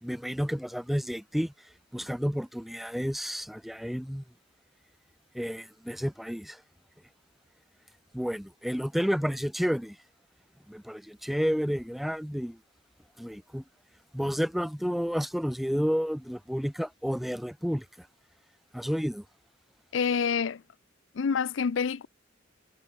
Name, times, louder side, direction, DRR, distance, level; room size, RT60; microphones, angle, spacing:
voice 1, 0.0-4.2 5.3-6.6 8.1-10.0 10.7-12.6 13.2-13.6 14.1-18.1 18.7-19.2, equal, ahead, 0.5 m, -31 dB
voice 2, 19.9-20.6 21.1-22.1, left 6 dB, 85° left, 0.5 m, -27 dB
head